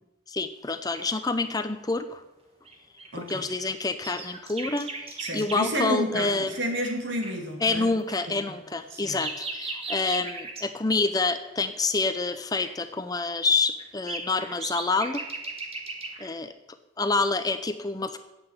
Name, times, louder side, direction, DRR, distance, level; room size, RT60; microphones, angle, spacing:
voice 1, 0.3-2.2 3.2-6.5 7.6-15.2 16.2-16.5 17.0-18.2, left 3 dB, 20° left, 10 dB, 0.5 m, -27 dB
sound 1, 0.9-1.2 2.7-5.8 6.5-6.6 6.8-6.9 7.2-7.3 7.6-7.7 8.1-10.7 11.4-11.7 12.5-12.7 13.3-16.3, right 3 dB, 30° right, 1.5 m, -38 dB
voice 2, 3.1-3.5 5.2-7.9 8.3-8.6 8.9-9.2, equal, 65° right, 2 dB, 2.7 m, -30 dB
9.8 x 8.0 x 9.0 m, 0.98 s
head